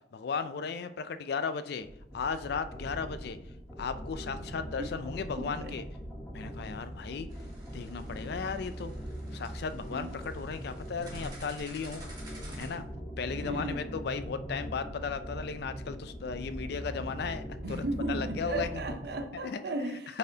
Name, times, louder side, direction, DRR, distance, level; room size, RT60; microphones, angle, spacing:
voice 1, 0.1-1.9 2.1-3.4 3.8-5.8 6.3-7.3 7.7-8.9 9.3-12.0 12.6-12.8 13.2-18.8 19.4-19.6 20.1-20.2, left 5 dB, 60° left, 0.4 m, -35 dB
sound 1, 1.8-19.2, equal, 10° left, 1.0 m, -41 dB
voice 2, 5.4-5.8 9.9-10.1 13.4-13.9 17.6-20.2, right 2 dB, 60° right, 0.6 m, -35 dB
sound 2, 7.3-12.8, right 1 dB, 25° right, 1.8 m, -49 dB
8.4 x 4.1 x 2.8 m
head